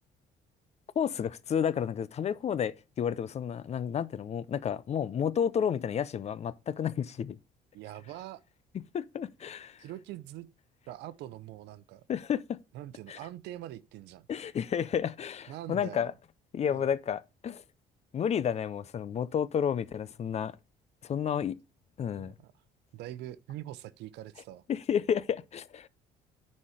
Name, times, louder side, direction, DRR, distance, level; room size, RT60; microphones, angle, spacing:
voice 1, 1.0-7.4 8.9-9.8 12.1-12.6 13.1-13.2 14.3-16.1 16.5-17.6 18.1-20.6 21.0-21.6 22.0-22.3 24.7-25.9, left 8 dB, 40° left, 0.6 m, -31 dB
voice 2, 7.7-8.4 9.8-10.5 10.9-12.0 12.7-14.3 15.5-16.1 16.7-16.9 22.2-22.5 22.9-24.6, right 13 dB, 85° right, 0.7 m, -43 dB
9.8 x 4.3 x 4.9 m
cardioid pair, 110°, 17 cm